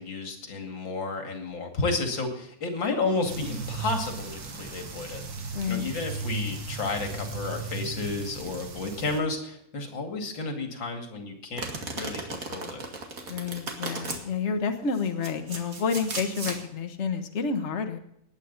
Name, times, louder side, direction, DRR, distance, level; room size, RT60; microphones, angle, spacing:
voice 1, 0.0-5.2 5.7-12.9, left 3 dB, 85° left, 4 dB, 3.2 m, -32 dB
sound 1, 3.2-9.2, right 3 dB, 75° right, 2.5 m, -36 dB
voice 2, 5.5-5.8 13.3-18.0, left 5 dB, 40° left, 6 dB, 1.5 m, -29 dB
Domestic sounds home sounds, 11.6-14.2 14.9-16.6, right 3 dB, 45° right, 2.5 m, -36 dB
19.5 x 9.3 x 4.1 m, 0.73 s
omnidirectional pair, 2.0 m